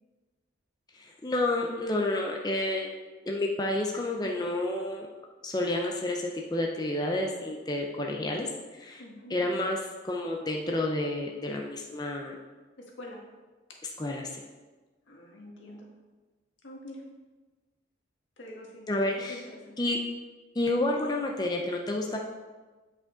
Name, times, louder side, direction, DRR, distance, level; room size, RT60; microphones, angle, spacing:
voice 1, 0.9-2.9 3.2-5.1 5.4-9.0 9.3-9.8 10.0-12.3 14.0-14.4 18.9-19.4 19.8-20.0 20.6-22.2, left 1 dB, 20° left, 0 dB, 0.5 m, -30 dB
voice 2, 9.0-9.4 12.8-13.2 15.1-15.9 16.6-17.0 18.4-18.9 19.2-19.8, left 1 dB, 85° left, -1 dB, 1.5 m, -45 dB
8.4 x 5.0 x 3.8 m, 1.3 s
head